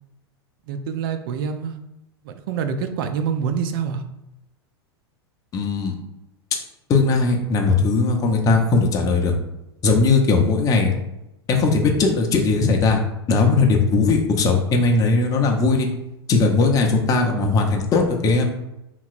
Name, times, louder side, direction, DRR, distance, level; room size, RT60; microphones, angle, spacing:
voice 1, 0.7-1.8 2.2-4.0, right 6 dB, 60° right, 8 dB, 0.4 m, -26 dB
voice 2, 5.5-5.9 6.9-9.3 9.8-10.9 11.5-13.0 13.3-15.9 16.3-18.5, left 3 dB, 25° left, 2 dB, 0.5 m, -18 dB
2.9 x 2.8 x 2.4 m, 0.90 s
hypercardioid pair, 100°, 14 cm